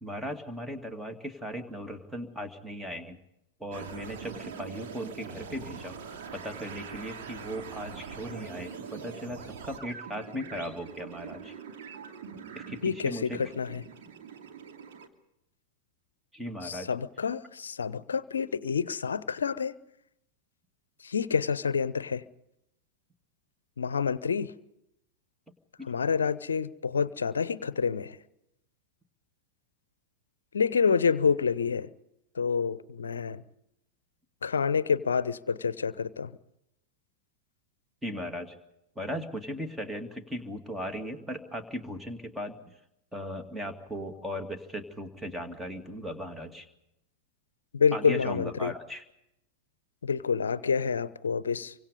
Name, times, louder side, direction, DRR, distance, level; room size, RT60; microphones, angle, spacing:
voice 1, 0.0-3.2 3.6-6.0 6.3-11.5 12.5-13.4 16.3-16.9 25.8-25.9 38.0-38.6 39.0-42.8 43.1-46.7 47.9-49.0, equal, 5° right, 2.4 m, -37 dB
sound 1, 3.7-15.1, right 6 dB, 55° right, 2.6 m, -43 dB
voice 2, 12.8-13.8 16.6-19.7 21.0-22.2 23.8-24.5 25.9-28.2 30.5-31.9 32.4-33.4 34.4-36.3 47.7-48.7 50.0-51.7, left 6 dB, 70° left, 0.8 m, -28 dB
28.5 x 24.5 x 5.3 m
figure-of-eight pair, 90°, 0 cm